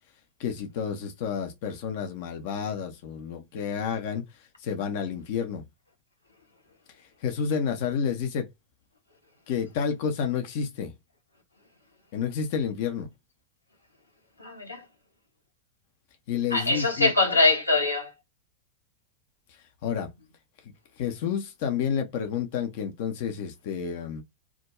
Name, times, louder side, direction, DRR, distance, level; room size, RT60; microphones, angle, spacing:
voice 1, 0.4-4.2 4.6-5.6 7.2-8.5 9.5-10.9 12.1-13.1 16.3-17.1 19.8-20.1 21.0-24.2, left 7 dB, 50° left, 0.5 m, -30 dB
voice 2, 14.4-14.8 16.5-18.1, left 3 dB, 85° left, 0.9 m, -23 dB
2.3 x 2.1 x 2.9 m
figure-of-eight pair, 90°, 0 cm